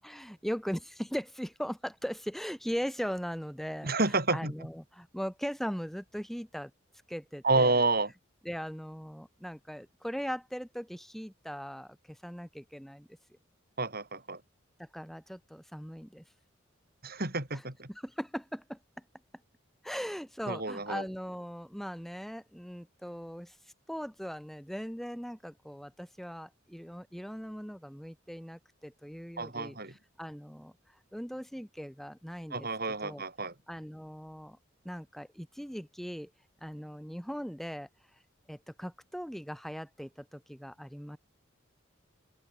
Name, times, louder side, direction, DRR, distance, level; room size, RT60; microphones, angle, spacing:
voice 1, 0.0-6.7 7.1-7.8 8.4-13.1 14.8-16.2 17.5-17.6 17.9-18.8 19.8-23.6 23.9-30.7 31.1-33.2 33.7-34.6 34.8-36.3 36.6-37.9 38.5-41.2, equal, ahead, 7.7 m, -39 dB
voice 2, 3.8-4.5 7.4-8.1 13.8-14.4 17.0-17.9 20.5-21.0 29.4-29.9 32.5-33.5, right 3 dB, 45° right, 5.3 m, -29 dB
open air
head